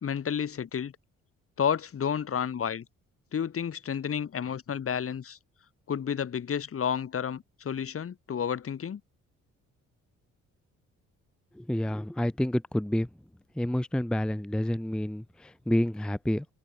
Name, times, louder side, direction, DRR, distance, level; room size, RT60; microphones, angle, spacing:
voice 1, 0.0-0.9 1.6-2.8 3.3-5.4 5.9-9.0, left 8 dB, 45° left, 2.3 m, -31 dB
voice 2, 11.5-13.1 13.6-16.5, left 1 dB, 5° left, 0.6 m, -29 dB
open air
cardioid pair, 90°, 30 cm